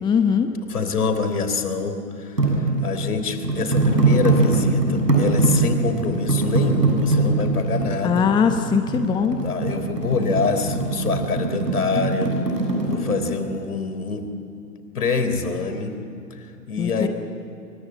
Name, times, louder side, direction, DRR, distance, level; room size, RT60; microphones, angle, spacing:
voice 1, 0.0-0.5 8.0-9.4 16.8-17.1, left 6 dB, 10° left, 7 dB, 1.0 m, -20 dB
voice 2, 0.7-8.3 9.4-12.3 12.8-14.3 14.9-16.0 16.3-17.1, left 4 dB, 65° left, 8 dB, 3.8 m, -26 dB
sound 1, 2.4-13.2, right 3 dB, 90° right, 7.7 m, -22 dB
28.5 x 23.5 x 8.7 m, 2.8 s
figure-of-eight pair, 115°, 48 cm